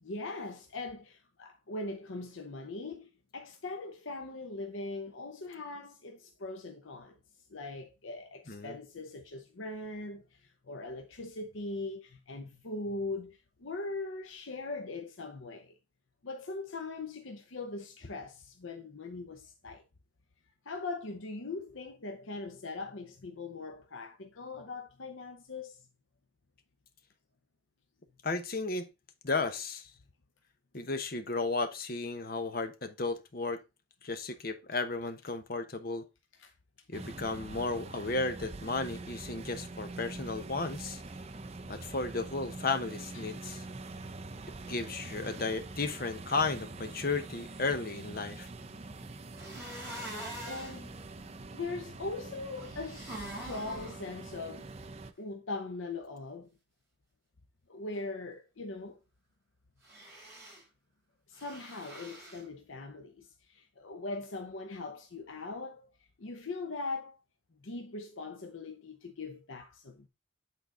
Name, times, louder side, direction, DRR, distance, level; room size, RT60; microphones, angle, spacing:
voice 1, 0.0-7.2 7.5-15.7 16.2-19.8 20.6-25.9 36.4-36.5 43.1-43.3 50.5-50.9 51.5-54.7 55.2-56.5 57.7-59.0 61.3-65.9 66.2-67.2 67.6-70.1, left 3 dB, 85° left, 0.8 m, -41 dB
voice 2, 8.5-8.8 28.2-28.9 29.2-29.9 30.7-33.6 34.0-36.0 36.9-41.0 41.7-43.6 44.6-48.5, left 3 dB, 50° left, 0.9 m, -34 dB
sound 1, 36.9-55.1, right 2 dB, 35° right, 0.6 m, -44 dB
sound 2, 49.4-50.8 52.6-54.0 59.8-60.6 61.4-62.4, right 1 dB, 15° right, 3.4 m, -44 dB
8.5 x 4.0 x 3.7 m
head